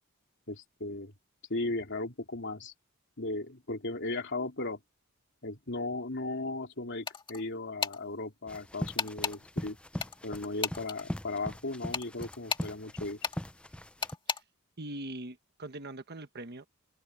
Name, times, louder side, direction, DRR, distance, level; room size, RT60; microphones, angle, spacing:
voice 1, 0.5-1.1 1.5-2.7 3.2-4.8 5.4-9.8 10.2-13.2, left 2 dB, 60° left, 3.6 m, -36 dB
sound 1, 7.1-7.4 7.8-8.0 9.0-9.4 10.0-11.0 11.9-12.7 13.2-13.4 14.0-14.4, left 5 dB, 25° left, 2.0 m, -33 dB
sound 2, 8.5-14.1, equal, 5° left, 0.5 m, -40 dB
voice 2, 14.8-16.7, right 1 dB, 50° right, 1.3 m, -42 dB
head